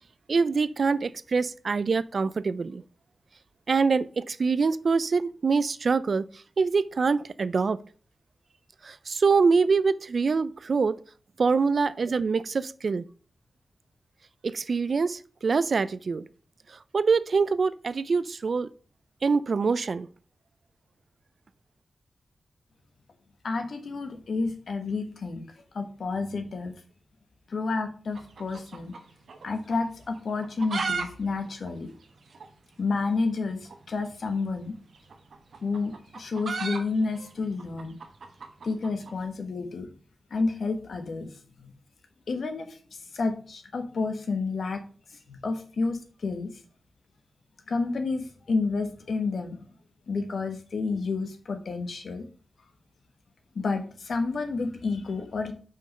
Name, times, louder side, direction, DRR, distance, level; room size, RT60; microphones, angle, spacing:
voice 1, 0.3-2.8 3.7-6.2 6.6-7.8 8.8-11.0 11.4-13.0 14.4-16.2 16.9-18.7 19.2-20.1, right 4 dB, 50° right, 0.3 m, -24 dB
voice 2, 23.4-26.7 27.5-28.9 29.4-31.9 32.8-34.8 35.6-38.0 38.6-39.9 40.3-41.7 42.3-44.8 45.1-46.6 47.7-49.6 50.1-52.2 53.5-55.5, left 3 dB, 60° left, 1.2 m, -30 dB
sound 1, 28.1-29.5 29.7-29.8 30.3-31.1 31.3-31.4 31.7-31.8 32.3-32.5 33.6-33.8 34.9-39.2, right 4 dB, 70° right, 1.2 m, -34 dB
5.7 x 5.2 x 5.2 m
wide cardioid pair, 175°, 0 cm